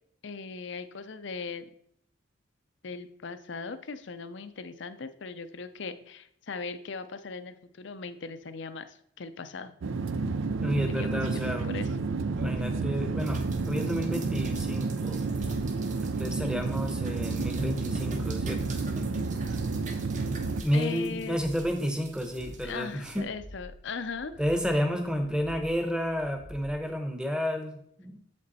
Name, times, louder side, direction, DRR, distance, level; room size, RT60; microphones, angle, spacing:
voice 1, 0.2-1.7 2.8-9.7 10.9-11.2 11.5-11.9 20.7-21.4 22.6-24.4, left 4 dB, 60° left, 11 dB, 0.5 m, -39 dB
sound 1, 9.8-20.6, right 3 dB, 70° right, 0.4 m, -30 dB
voice 2, 10.6-11.7 12.2-13.4 13.7-15.2 16.2-18.8 20.6-23.3 24.4-28.2, equal, 5° right, 5 dB, 0.9 m, -31 dB
sound 2, 13.2-23.2, right 2 dB, 35° right, 0.9 m, -44 dB
sound 3, 15.7-26.8, left 1 dB, 55° right, 1.6 m, -48 dB
8.0 x 5.3 x 4.1 m, 0.69 s
head